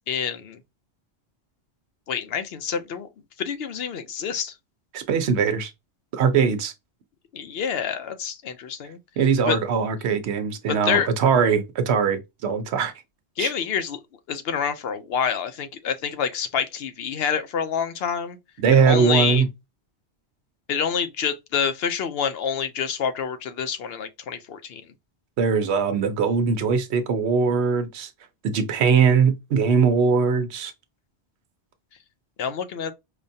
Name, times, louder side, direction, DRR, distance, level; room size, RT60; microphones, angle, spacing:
voice 1, 0.1-0.6 2.1-3.1 3.4-4.5 7.3-9.0 9.5-9.6 10.7-11.1 13.4-14.0 14.3-18.4 18.8-19.4 20.7-24.8 32.4-32.9, left 7 dB, 70° left, 0.7 m, -27 dB
voice 2, 4.9-5.7 6.1-6.7 9.2-12.9 13.4-13.5 18.6-19.5 25.4-28.1 28.4-30.7, right 6 dB, 75° right, 0.9 m, -21 dB
5.0 x 2.2 x 2.6 m
omnidirectional pair, 1.1 m